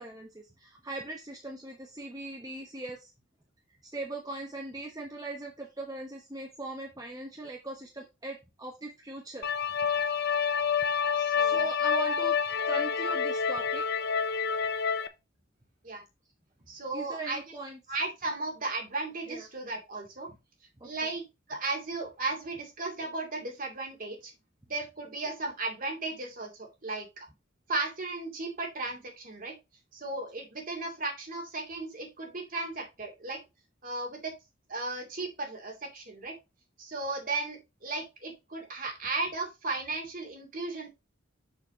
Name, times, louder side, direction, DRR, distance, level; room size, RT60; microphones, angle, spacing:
voice 1, 0.0-3.1 3.9-9.5 11.4-12.4 12.7-13.9 14.3-14.5 16.9-17.8 19.3-19.5 20.8-20.9 38.8-38.9, right 2 dB, 20° right, 1 dB, 1.0 m, -40 dB
sound 1, 9.4-15.1, left 6 dB, 55° left, 0.7 m, -28 dB
voice 2, 11.2-11.7 15.8-16.0 16.7-17.4 17.9-20.3 20.8-24.3 24.7-27.3 27.7-29.5 29.9-33.4 33.8-34.3 34.7-36.3 36.8-40.9, right 3 dB, 45° right, 2 dB, 2.4 m, -35 dB
6.7 x 6.7 x 2.9 m, 0.24 s
head